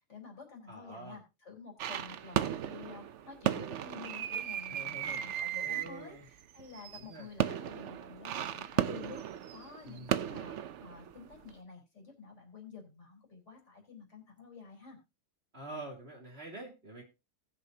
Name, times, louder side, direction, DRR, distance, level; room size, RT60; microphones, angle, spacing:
voice 1, 0.1-15.0, left 5 dB, 45° left, 0 dB, 4.4 m, -50 dB
voice 2, 0.7-1.2 4.7-5.2 5.6-6.2 6.9-7.3 9.8-10.3 15.5-17.0, right 2 dB, 40° right, 0 dB, 2.7 m, -46 dB
sound 1, 1.8-11.5, right 10 dB, 60° right, 0.8 m, -35 dB
19.5 x 6.8 x 2.7 m, 0.26 s
omnidirectional pair, 1.7 m